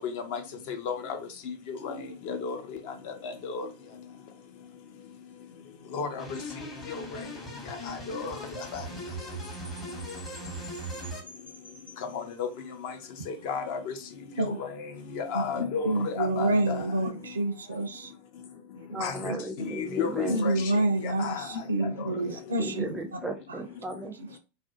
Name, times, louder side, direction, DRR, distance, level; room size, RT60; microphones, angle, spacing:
voice 1, 0.7-1.2 1.7-2.6 3.2-3.7 5.9-6.2 7.9-8.3 8.7-8.8 13.4-13.9 14.6-14.7 15.1-16.8 19.0-19.1 19.6-20.5 21.0-21.4 22.0-22.1, left 6 dB, 45° left, 0.5 m, -32 dB
sound 1, 6.2-11.2, right 1 dB, 20° left, 0.9 m, -39 dB
Chime, 8.3-12.8, left 1 dB, 90° left, 0.8 m, -50 dB
voice 2, 15.3-18.1 19.3-19.4 20.3-22.7 24.2-24.4, right 2 dB, 70° right, 0.4 m, -28 dB
voice 3, 18.9-20.5 22.1-24.1, right 1 dB, 10° right, 0.5 m, -36 dB
2.5 x 2.0 x 2.6 m
figure-of-eight pair, 90°, 0 cm